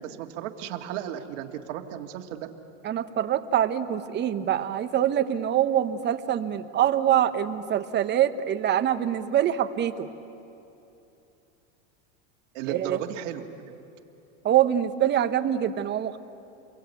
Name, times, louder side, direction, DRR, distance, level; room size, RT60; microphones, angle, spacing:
voice 1, 0.0-2.5 12.5-13.7, right 10 dB, 65° right, 5 dB, 2.1 m, -35 dB
voice 2, 2.8-10.1 12.7-13.0 14.4-16.2, right 10 dB, 25° right, 9 dB, 1.1 m, -24 dB
29.5 x 23.0 x 8.4 m, 2.8 s
supercardioid pair, 140°, 39 cm